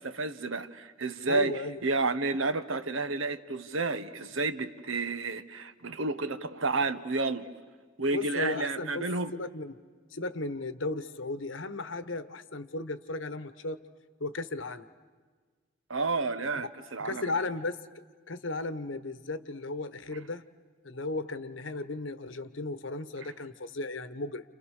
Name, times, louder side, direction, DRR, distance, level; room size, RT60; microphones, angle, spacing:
voice 1, 0.0-7.5 8.0-9.3 15.9-17.2 23.2-23.3, right 3 dB, 80° right, 1.3 m, -31 dB
voice 2, 1.3-1.8 8.1-9.0 9.3-9.7 10.1-13.8 14.2-14.9 17.0-17.9 18.3-20.4 20.8-24.4, left 2 dB, 70° left, 1.2 m, -35 dB
30.0 x 29.5 x 6.6 m
head